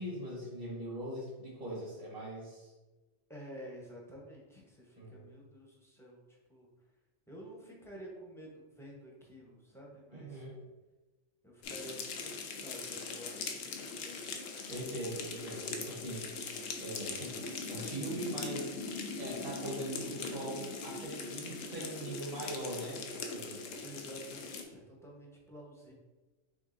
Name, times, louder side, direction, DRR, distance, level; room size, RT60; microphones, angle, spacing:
voice 1, 0.0-2.7 5.0-5.3 10.1-10.6 14.7-16.3 16.8-18.8 19.2-23.6, right 1 dB, 35° right, -5 dB, 1.2 m, -41 dB
voice 2, 3.3-6.7 7.3-10.4 11.4-14.2 23.8-25.9, equal, 5° left, -3 dB, 0.6 m, -50 dB
sound 1, 11.6-24.6, left 4 dB, 85° left, 1.0 m, -41 dB
5.3 x 3.5 x 2.5 m, 1.2 s
omnidirectional pair, 1.3 m